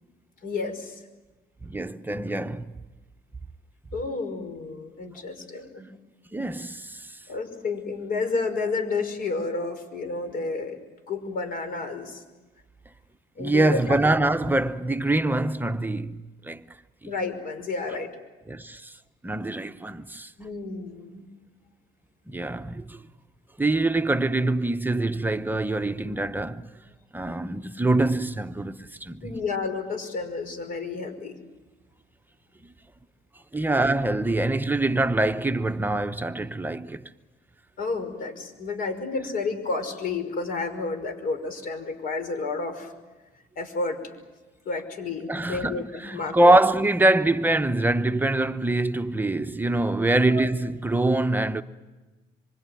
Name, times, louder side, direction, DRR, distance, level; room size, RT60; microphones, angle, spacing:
voice 1, 0.4-1.0 3.9-5.9 7.3-10.8 11.1-12.2 13.4-14.0 17.0-18.1 20.4-21.2 29.2-31.3 33.7-33.8 37.8-42.9 43.6-44.0 44.7-45.8 46.1-46.6 50.3-50.5, left 4 dB, 55° left, 5.5 m, -31 dB
voice 2, 1.6-2.7 6.3-7.2 13.4-16.7 18.5-18.9 19.2-20.3 22.3-23.0 23.6-26.6 27.1-29.2 33.5-37.1 45.3-51.6, right 2 dB, 10° right, 0.9 m, -24 dB
26.0 x 24.0 x 9.2 m
cardioid pair, 110°, 17 cm